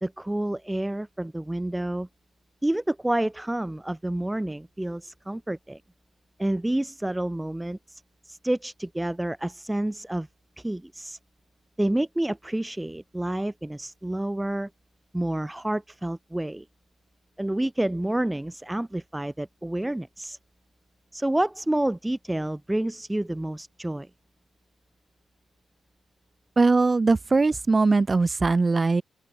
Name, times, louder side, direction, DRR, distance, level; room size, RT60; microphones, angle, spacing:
voice 1, 0.0-2.1 2.6-5.8 6.4-10.3 10.6-11.2 11.8-14.7 15.1-16.6 17.4-20.4 21.1-24.1, right 1 dB, 10° right, 2.3 m, -29 dB
voice 2, 26.6-29.0, right 3 dB, 25° right, 0.7 m, -21 dB
open air
cardioid pair, 120°, 0 cm